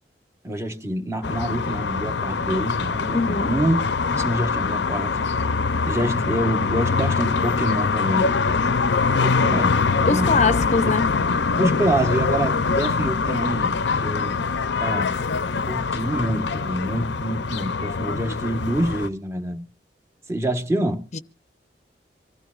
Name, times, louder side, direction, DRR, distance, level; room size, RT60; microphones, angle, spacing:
voice 1, 0.4-3.8 4.1-5.2 5.8-8.4 9.1-10.4 11.6-13.7 14.0-14.4 14.8-15.1 15.7-19.6 20.3-21.0, right 1 dB, 15° right, 1.3 m, -26 dB
sound 1, 1.2-19.1, left 4 dB, 85° left, 0.6 m, -23 dB
voice 2, 3.1-3.5 10.1-11.1 21.1-21.2, left 4 dB, 40° left, 0.7 m, -22 dB
25.5 x 15.0 x 2.5 m
head